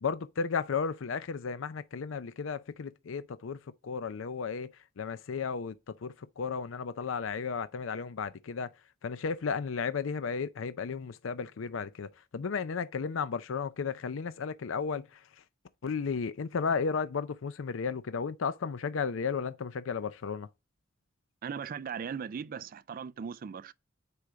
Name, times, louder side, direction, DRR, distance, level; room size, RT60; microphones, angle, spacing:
voice 1, 0.0-3.6 3.8-4.7 5.0-5.7 6.0-8.7 9.0-15.2 15.8-20.5, left 5 dB, 90° left, 0.5 m, -34 dB
voice 2, 21.4-23.7, right 6 dB, 45° right, 0.3 m, -38 dB
9.6 x 4.9 x 3.8 m
head